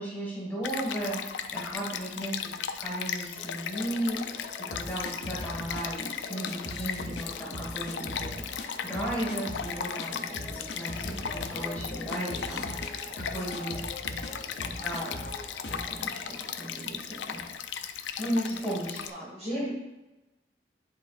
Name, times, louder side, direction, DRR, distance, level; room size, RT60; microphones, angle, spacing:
voice 1, 0.0-2.5 2.8-12.8 13.1-13.8 14.6-15.2 15.7-17.4 18.2-19.0 19.4-19.7, right 1 dB, 10° left, -7 dB, 1.9 m, -35 dB
Stream, 0.6-19.1, left 8 dB, 90° left, 0.4 m, -37 dB
sound 1, 3.3-17.6, left 1 dB, 45° left, 1.3 m, -46 dB
sound 2, 4.7-5.8 6.5-7.2 7.5-8.7 8.9-9.7 10.0-10.1 10.3-14.3 14.6-15.3 15.6-15.9, left 1 dB, 70° left, 0.8 m, -39 dB
voice 2, 12.5-12.9 13.2-15.4 18.2-19.7, equal, 35° right, -6 dB, 1.9 m, -51 dB
10.0 x 4.0 x 2.5 m, 1.0 s
head